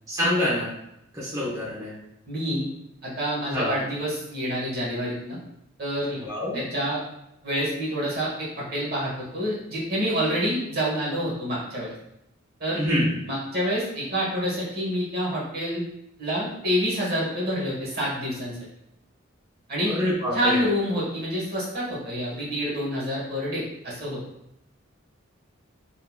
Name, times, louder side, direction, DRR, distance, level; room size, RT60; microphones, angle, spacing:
voice 1, 0.1-0.7 1.1-1.9 3.5-3.7 6.1-6.6 12.7-13.1 19.9-20.6, left 1 dB, 15° right, -9 dB, 1.0 m, -26 dB
voice 2, 2.3-2.7 3.0-5.4 5.8-6.2 6.5-7.0 7.4-11.9 12.6-12.8 13.3-15.8 16.2-18.6 19.7-19.9 20.3-24.2, equal, 45° right, -6 dB, 1.4 m, -27 dB
3.9 x 3.0 x 2.3 m, 0.81 s
head